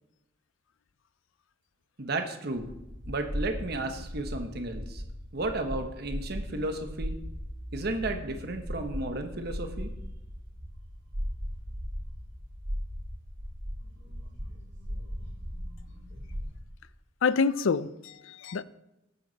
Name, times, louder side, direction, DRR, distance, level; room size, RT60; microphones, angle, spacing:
voice 1, 2.0-2.7 3.1-5.0 5.3-7.2 7.7-9.9, right 2 dB, 55° right, 1.1 m, -33 dB
sound 1, 2.6-16.6, equal, 75° right, 3.0 m, -38 dB
voice 2, 17.2-18.6, left 5 dB, 90° left, 0.5 m, -27 dB
11.5 x 8.5 x 4.1 m
head